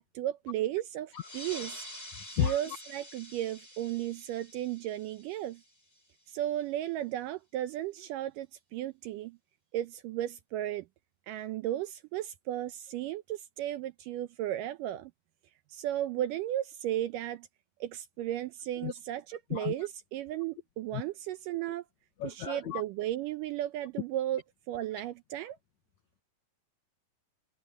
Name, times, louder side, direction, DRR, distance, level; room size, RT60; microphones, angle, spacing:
voice 1, 0.0-1.9 2.4-5.6 6.3-9.4 9.7-10.9 11.3-15.1 15.7-17.5 17.8-21.8 22.2-25.6, right 13 dB, 75° right, 2.1 m, -35 dB
sound 1, 1.1-6.2, left 1 dB, 15° left, 4.5 m, -47 dB
voice 2, 22.2-22.8, left 11 dB, 70° left, 1.8 m, -31 dB
omnidirectional pair, 4.2 m